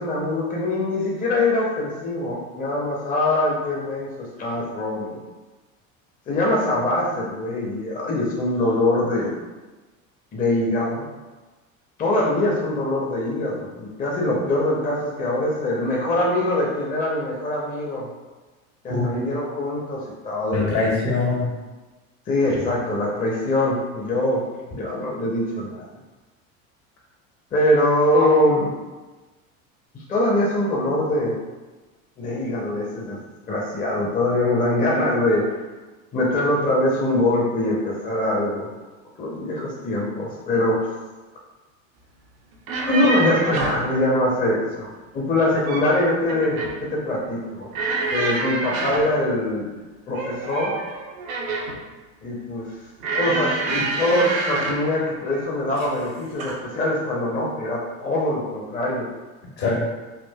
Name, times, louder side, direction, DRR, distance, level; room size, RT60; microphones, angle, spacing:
voice 1, 0.0-5.2 6.3-9.3 10.3-11.1 12.0-18.1 18.8-20.6 22.3-24.5 24.7-25.9 27.5-28.7 30.1-31.4 32.2-33.2 33.5-35.6 36.1-38.7 39.2-40.9 42.9-47.7 48.1-49.7 50.1-50.7 52.2-52.7 53.1-59.1, left 1 dB, 20° left, -3 dB, 0.6 m, -23 dB
voice 2, 18.9-19.2 20.5-21.5 28.1-28.3 59.6-59.8, left 3 dB, 65° left, -3 dB, 1.3 m, -23 dB
sound 1, 42.5-43.9 45.3-45.9 46.3-46.8 47.7-49.1 50.1-51.8 53.0-54.9 55.7-56.0 56.4-56.6, right 3 dB, 80° right, 0.7 m, -27 dB
3.7 x 2.4 x 2.2 m, 1.2 s
hypercardioid pair, 85°, 41 cm